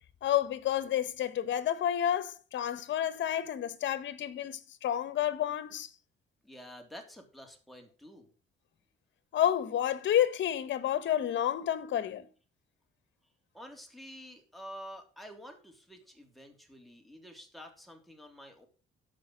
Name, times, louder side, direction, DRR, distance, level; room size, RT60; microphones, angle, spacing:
voice 1, 0.2-5.9 9.3-12.3, left 10 dB, 70° left, 1.2 m, -30 dB
voice 2, 6.4-8.3 13.5-18.7, equal, ahead, 3.2 m, -49 dB
12.5 x 5.3 x 6.2 m
cardioid pair, 90°, 20 cm